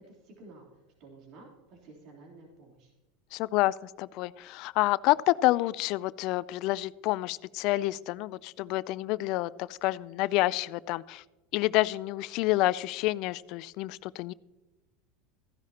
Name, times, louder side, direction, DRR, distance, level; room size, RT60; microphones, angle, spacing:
voice 1, 0.1-0.6 1.0-2.9, right 3 dB, 55° right, -1 dB, 3.3 m, -52 dB
voice 2, 3.3-11.2 11.5-14.3, left 18 dB, 60° left, 20 dB, 0.3 m, -28 dB
15.0 x 10.5 x 2.9 m, 1.1 s
hypercardioid pair, 105°, 0 cm